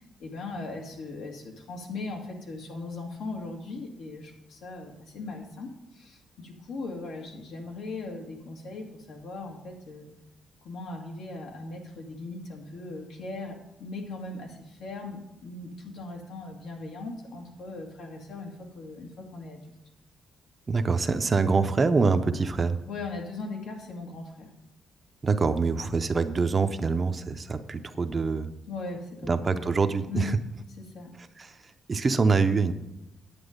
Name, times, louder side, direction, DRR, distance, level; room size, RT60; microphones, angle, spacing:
voice 1, 0.0-10.1 10.6-19.6 22.9-24.5 28.7-29.3 30.1-30.3 30.9-31.1, left 3 dB, 80° left, 1 dB, 2.1 m, -39 dB
voice 2, 20.7-22.8 25.2-28.5 29.2-30.4 31.2-32.7, right 4 dB, 30° right, 9 dB, 0.6 m, -25 dB
9.9 x 8.8 x 5.2 m, 0.90 s
cardioid pair, 125°, 0 cm